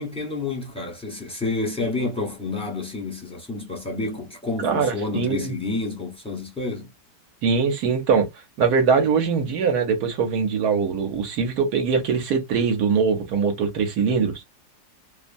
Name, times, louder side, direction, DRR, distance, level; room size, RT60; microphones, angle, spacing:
voice 1, 0.0-6.9, left 3 dB, 5° left, 0.7 m, -29 dB
voice 2, 4.6-5.5 7.4-8.3 8.6-14.4, right 5 dB, 65° right, 1.2 m, -22 dB
2.9 x 2.2 x 2.5 m
omnidirectional pair, 1.9 m